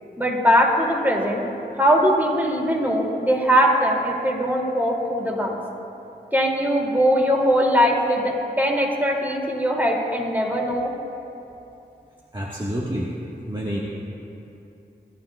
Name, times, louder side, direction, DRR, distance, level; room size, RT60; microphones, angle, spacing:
voice 1, 0.2-1.4 1.8-5.6 6.3-10.9, equal, 10° right, -1 dB, 2.7 m, -21 dB
voice 2, 12.3-13.1 13.5-13.8, equal, 25° right, -5 dB, 1.5 m, -28 dB
22.0 x 12.0 x 2.4 m, 2.8 s
cardioid pair, 40°, 18 cm